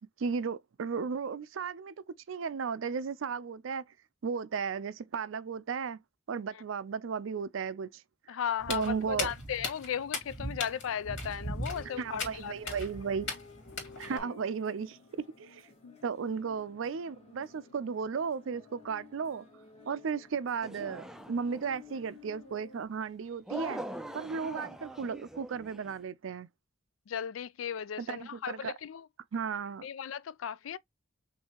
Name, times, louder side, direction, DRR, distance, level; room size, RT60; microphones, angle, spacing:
voice 1, 0.2-3.8 4.2-6.0 6.3-8.0 8.7-9.3 12.0-13.3 14.0-15.0 15.4-15.7 16.0-19.5 19.9-23.8 24.1-26.5 28.0-28.7 29.3-29.9, right 6 dB, 75° right, 0.4 m, -35 dB
voice 2, 8.3-12.8 14.0-14.3 15.8-15.9 27.1-29.1 29.8-30.8, left 8 dB, 85° left, 0.4 m, -36 dB
Walk footsteps, 8.6-14.2, left 2 dB, 65° left, 2.1 m, -38 dB
sound 1, 10.6-22.8, left 4 dB, 35° left, 1.8 m, -55 dB
sound 2, 20.6-21.8 23.5-26.0, right 1 dB, 5° right, 0.4 m, -42 dB
5.5 x 2.7 x 2.9 m
head